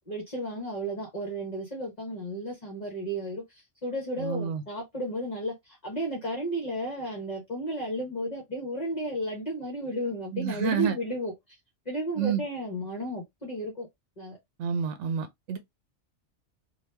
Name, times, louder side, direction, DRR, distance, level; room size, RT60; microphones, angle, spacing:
voice 1, 0.1-11.6 11.9-13.9 14.2-14.4, equal, 35° left, 1.0 m, -33 dB
voice 2, 4.2-4.6 10.3-10.9 12.2-12.4 14.6-15.6, right 7 dB, 75° right, 0.9 m, -29 dB
2.9 x 2.5 x 3.2 m
omnidirectional pair, 1.2 m